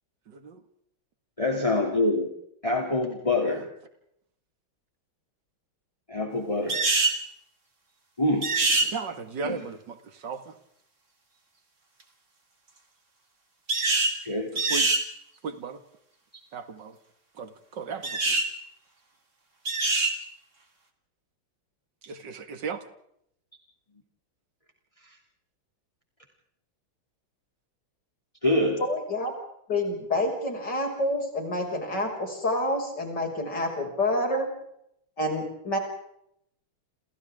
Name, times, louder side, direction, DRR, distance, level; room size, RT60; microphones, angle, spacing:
voice 1, 0.3-0.6 3.5-3.6 8.8-10.5 14.5-14.9 15.4-15.8 16.5-17.0 17.4-18.3 22.0-22.8, right 5 dB, 60° right, 9 dB, 2.6 m, -36 dB
voice 2, 1.4-2.3 2.6-3.7 6.1-6.8 8.2-8.5 9.4-9.6 14.2-14.5 28.4-28.8, left 2 dB, 15° left, 1 dB, 2.9 m, -25 dB
sound 1, 6.7-7.2 8.4-8.9 13.7-14.2 14.6-15.0 18.0-18.5 19.6-20.2, right 3 dB, 35° right, 3.1 m, -24 dB
voice 3, 28.8-29.3 29.7-34.5 35.2-35.8, left 1 dB, 55° left, 2 dB, 6.8 m, -28 dB
29.5 x 28.5 x 3.7 m, 0.74 s
omnidirectional pair, 2.2 m